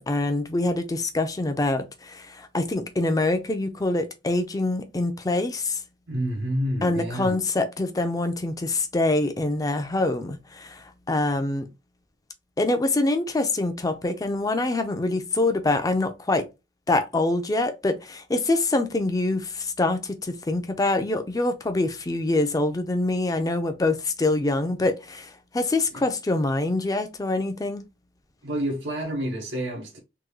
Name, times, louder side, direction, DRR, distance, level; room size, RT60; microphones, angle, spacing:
voice 1, 0.0-5.8 6.8-11.7 12.6-16.5 16.9-27.8, left 2 dB, 20° left, 0.4 m, -25 dB
voice 2, 6.1-7.4 25.9-26.0 28.4-30.0, equal, 90° right, 0.9 m, -29 dB
3.6 x 2.3 x 3.0 m
head